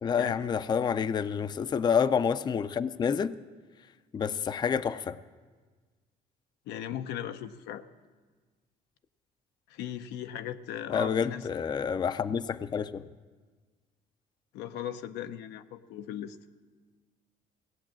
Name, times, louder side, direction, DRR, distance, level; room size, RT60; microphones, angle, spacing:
voice 1, 0.0-3.3 4.1-5.2 10.9-13.1, left 7 dB, 25° left, 14 dB, 0.4 m, -28 dB
voice 2, 6.7-7.8 9.7-11.5 14.5-16.4, left 10 dB, 90° left, 9 dB, 0.6 m, -38 dB
17.5 x 8.2 x 7.4 m, 1.4 s
cardioid pair, 110°, 17 cm